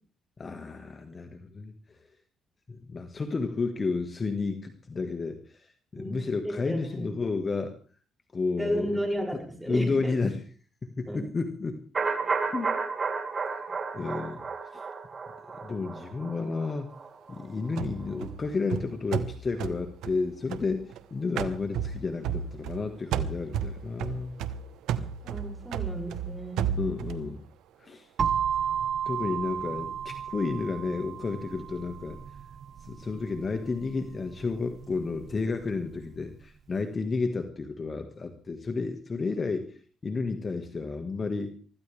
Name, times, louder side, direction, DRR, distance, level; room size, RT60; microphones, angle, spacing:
voice 1, 0.4-2.0 2.7-7.8 8.3-9.0 9.7-10.4 10.8-11.8 12.5-12.7 13.9-14.4 14.7-14.8 15.5-16.9 17.3-24.4 26.7-27.4 27.8-28.1 29.1-32.2 32.8-41.5, left 4 dB, 35° left, 6 dB, 1.7 m, -31 dB
voice 2, 6.0-7.1 8.6-10.2 11.1-11.2 25.2-26.7, equal, 5° right, 1 dB, 6.7 m, -33 dB
sound 1, 11.9-17.8 18.1-18.2, right 4 dB, 40° right, 3.2 m, -32 dB
sound 2, 17.8-21.0 21.4-22.8 23.1-27.3, right 8 dB, 90° right, 1.1 m, -33 dB
sound 3, 28.2-36.0, right 8 dB, 55° right, 0.9 m, -34 dB
24.5 x 14.0 x 3.5 m, 0.40 s
cardioid pair, 90°, 0 cm